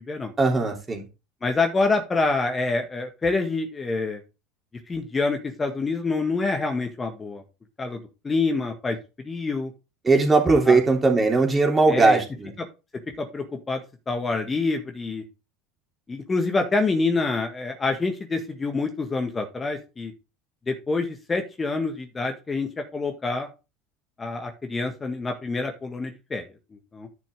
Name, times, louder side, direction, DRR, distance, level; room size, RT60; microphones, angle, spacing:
voice 1, 0.4-1.0 10.0-12.5, right 3 dB, 20° right, 2 dB, 3.1 m, -19 dB
voice 2, 1.4-4.2 4.9-7.4 7.8-9.0 9.2-9.7 10.7-10.8 11.9-12.2 12.6-12.7 13.2-13.8 14.1-15.2 16.1-20.1 20.7-23.5 24.2-26.4 26.7-27.1, left 3 dB, 25° left, 5 dB, 1.8 m, -26 dB
10.5 x 6.0 x 3.8 m, 0.29 s
hypercardioid pair, 75°, 0 cm